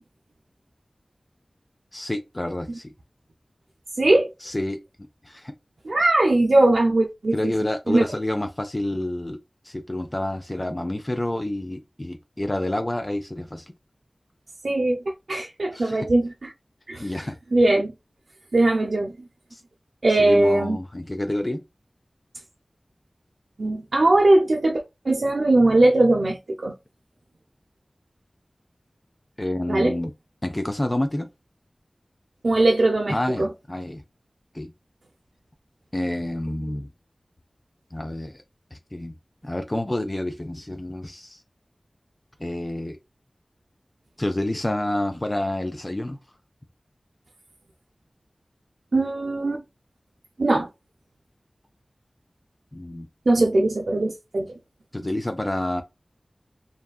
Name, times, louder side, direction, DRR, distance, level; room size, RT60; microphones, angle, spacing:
voice 1, 1.9-2.9 4.4-4.8 5.2-5.5 7.3-13.7 15.7-16.1 17.0-17.4 19.5-19.6 20.2-21.6 29.4-30.1 30.4-31.3 33.1-34.0 34.5-34.7 35.9-36.9 37.9-38.4 38.7-39.1 39.4-41.4 42.4-43.0 44.2-46.2 52.7-53.1 53.4-53.5 54.9-55.8, left 1 dB, 30° left, 0.3 m, -28 dB
voice 2, 4.0-4.3 5.8-7.5 7.9-8.0 14.6-15.0 15.3-16.5 16.9-17.1 17.5-17.9 18.5-19.1 20.0-20.8 23.6-26.7 29.7-29.9 32.4-33.5 48.9-49.6 50.4-50.7 53.3-54.5, right 2 dB, 80° right, 0.4 m, -20 dB
2.6 x 2.3 x 2.3 m
wide cardioid pair, 40°, 0 cm